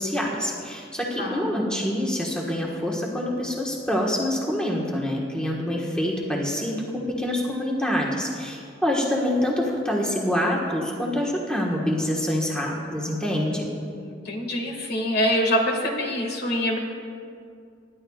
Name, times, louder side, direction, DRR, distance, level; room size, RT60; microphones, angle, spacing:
voice 1, 0.0-13.7, left 1 dB, 5° left, -3 dB, 1.4 m, -26 dB
voice 2, 13.3-16.8, equal, 60° left, 1 dB, 2.0 m, -26 dB
26.5 x 11.0 x 2.4 m, 2.3 s
head